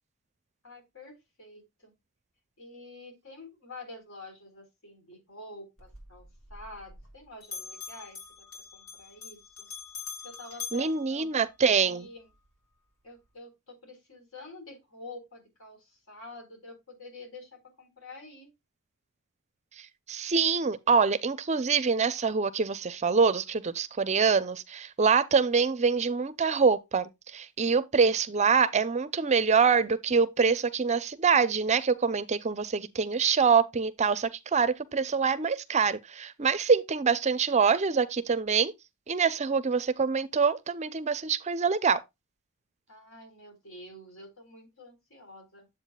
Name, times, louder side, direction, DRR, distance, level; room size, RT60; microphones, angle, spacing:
voice 1, 0.6-1.9 2.6-8.5 8.7-9.7 10.2-11.5 11.8-12.3 13.0-18.5 42.9-45.7, left 2 dB, 65° left, 4.2 m, -48 dB
Bell, 5.8-7.2 7.4-11.9, left 5 dB, 85° left, 4.4 m, -44 dB
voice 2, 10.7-12.1 20.1-38.7 39.1-42.0, right 5 dB, 30° right, 0.5 m, -25 dB
9.1 x 7.8 x 2.3 m
head